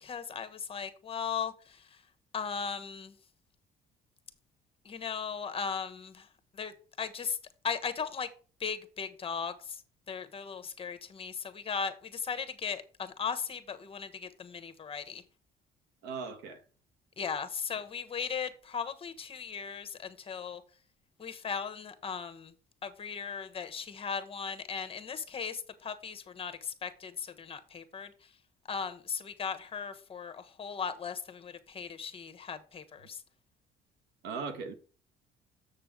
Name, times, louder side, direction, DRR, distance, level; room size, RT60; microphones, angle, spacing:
voice 1, 0.0-1.5 2.3-3.1 4.8-6.2 6.6-6.7 7.0-7.4 7.6-8.3 8.6-9.8 10.1-15.2 17.2-20.6 21.2-22.5 22.8-28.1 28.7-33.2, left 6 dB, 35° left, 1.2 m, -37 dB
voice 2, 16.0-16.6 34.2-34.7, right 5 dB, 90° right, 1.5 m, -38 dB
7.4 x 6.6 x 3.7 m
cardioid pair, 110°, 17 cm